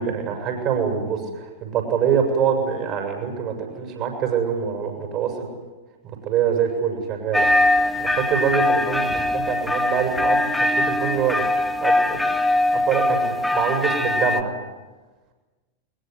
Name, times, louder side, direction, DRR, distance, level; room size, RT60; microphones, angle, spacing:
voice 1, 0.0-5.5 6.2-11.5 11.8-12.2 12.7-14.5, right 7 dB, 35° right, 4 dB, 7.5 m, -25 dB
sound 1, 7.3-14.4, left 1 dB, 5° left, 1.9 m, -21 dB
22.5 x 22.0 x 9.8 m, 1.2 s
figure-of-eight pair, 90°, 0 cm